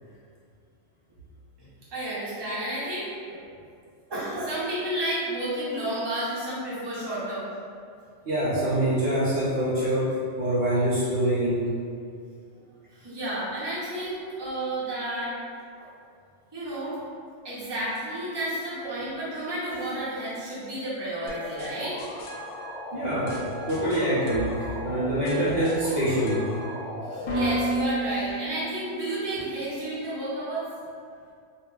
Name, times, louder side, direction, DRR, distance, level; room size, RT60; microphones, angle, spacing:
voice 1, 1.6-3.4 4.1-7.4 12.9-15.3 16.5-17.0 17.4-22.0 26.9-30.7, right 1 dB, 25° right, -10 dB, 0.7 m, -31 dB
voice 2, 8.3-11.6 22.9-26.4, right 1 dB, 60° right, -9 dB, 0.8 m, -25 dB
sound 1, 21.3-29.1, right 1 dB, 70° left, 0.8 m, -33 dB
2.2 x 2.0 x 3.7 m, 2.3 s
omnidirectional pair, 1.2 m